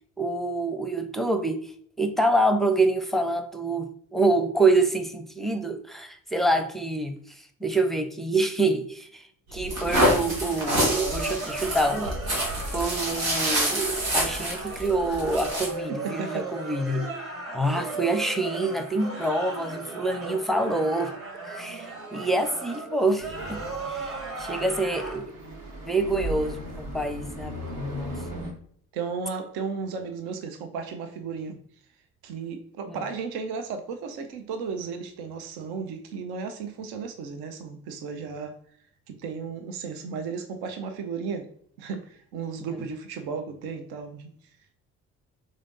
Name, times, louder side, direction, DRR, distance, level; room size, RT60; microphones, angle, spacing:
voice 1, 0.2-1.7 2.0-7.2 7.6-9.2 9.5-12.2 12.7-17.1 17.5-21.1 21.5-25.3 25.9-28.2 32.9-33.0 42.7-42.8, right 2 dB, ahead, 0.6 m, -26 dB
sound 1, 9.5-15.7, equal, 90° right, 1.1 m, -27 dB
sound 2, 10.7-25.2, right 3 dB, 35° right, 1.9 m, -36 dB
voice 2, 16.0-16.5 24.5-24.6 28.9-31.6 32.2-38.5 39.1-41.5 41.8-44.3, right 5 dB, 65° right, 0.7 m, -34 dB
sound 3, 23.2-28.5, right 1 dB, 50° right, 1.3 m, -38 dB
3.7 x 3.4 x 3.9 m
hypercardioid pair, 45°, 40 cm